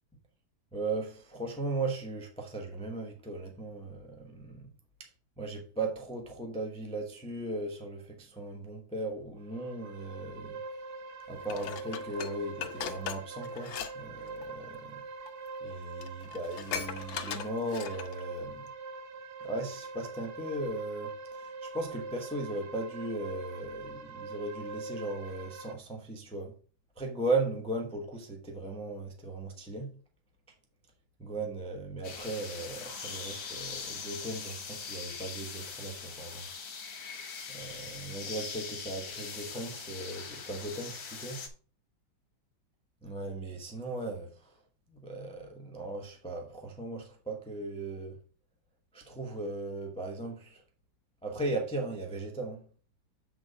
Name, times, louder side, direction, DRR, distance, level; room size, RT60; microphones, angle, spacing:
voice 1, 0.7-4.7 5.0-5.1 5.4-10.6 11.3-15.1 15.6-18.7 19.4-26.6 27.0-30.0 31.2-36.5 37.5-41.4 43.0-44.6 44.9-48.2 48.9-50.6 51.2-52.7, right 2 dB, 5° left, 0.7 m, -37 dB
sound 1, 9.4-25.7, right 3 dB, 60° right, 1.2 m, -43 dB
Dishes pots and pans, 11.5-13.9 14.2-14.4 15.3-15.4 15.7-15.8 16.0-18.2 18.7-18.8, left 7 dB, 90° left, 1.5 m, -39 dB
sound 2, 32.0-41.5, left 5 dB, 50° left, 1.4 m, -41 dB
7.4 x 4.0 x 5.0 m
omnidirectional pair, 2.1 m